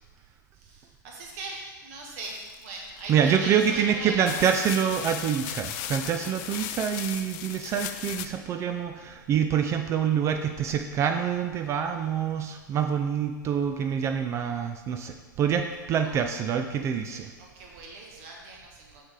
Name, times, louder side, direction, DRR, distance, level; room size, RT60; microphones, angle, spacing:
voice 1, 0.5-4.4 16.0-16.1 17.4-19.0, right 2 dB, 50° right, -1 dB, 1.8 m, -40 dB
sound 1, 2.2-3.1 3.8-3.9 4.3-8.3, left 11 dB, 40° left, 0.4 m, -36 dB
voice 2, 3.1-17.3, right 8 dB, 25° right, 6 dB, 0.4 m, -26 dB
6.6 x 6.1 x 3.7 m, 1.3 s
figure-of-eight pair, 105°, 11 cm